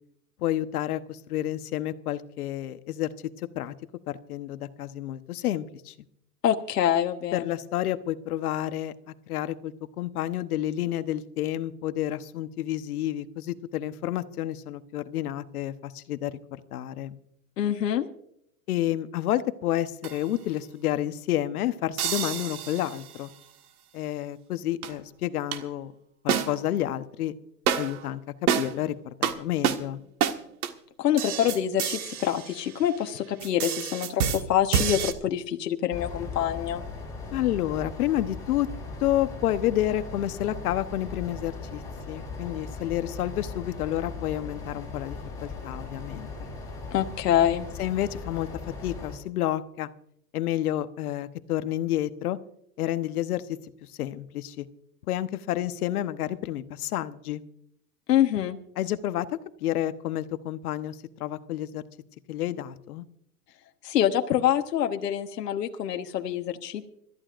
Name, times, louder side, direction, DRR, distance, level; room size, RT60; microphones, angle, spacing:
voice 1, 0.4-3.1 3.4-3.7 4.1-5.9 7.3-8.9 9.3-16.3 16.7-17.2 18.7-23.3 23.9-25.9 26.2-27.3 27.8-28.2 28.6-30.0 37.3-38.7 39.0-46.5 47.8-48.5 48.8-49.9 50.3-52.4 52.8-53.6 54.0-54.7 55.1-57.4 58.8-61.8 62.3-63.0, left 13 dB, 65° left, 12 dB, 1.1 m, -30 dB
voice 2, 6.4-7.5 17.6-18.1 31.0-36.8 46.9-47.7 58.1-58.6 63.8-66.9, left 10 dB, 85° left, 6 dB, 1.3 m, -25 dB
sound 1, 20.0-20.3 22.0-23.2 24.8-24.9 25.5-25.6 26.3-26.8 27.7-28.1 28.5-28.8 29.2-29.3 29.6-29.8 30.2-30.4 30.6-30.7 31.2-33.1 33.4-35.1, right 8 dB, 65° right, 1.7 m, -28 dB
sound 2, 35.9-49.2, left 4 dB, 5° left, 6.2 m, -38 dB
26.0 x 13.5 x 2.5 m, 0.73 s
hypercardioid pair, 145°, 47 cm